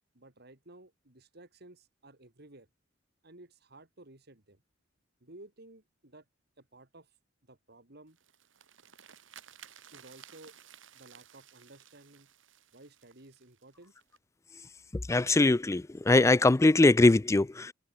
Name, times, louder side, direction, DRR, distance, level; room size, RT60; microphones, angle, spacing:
voice 1, 0.1-2.7 3.2-4.6 5.2-6.3 6.6-7.2 7.5-8.2 9.9-10.5 10.9-12.3 12.7-13.9, right 2 dB, 55° right, 3.5 m, -54 dB
sound 1, 8.1-14.2, right 9 dB, 85° right, 3.1 m, -56 dB
voice 2, 14.9-17.7, left 2 dB, 15° left, 0.4 m, -22 dB
head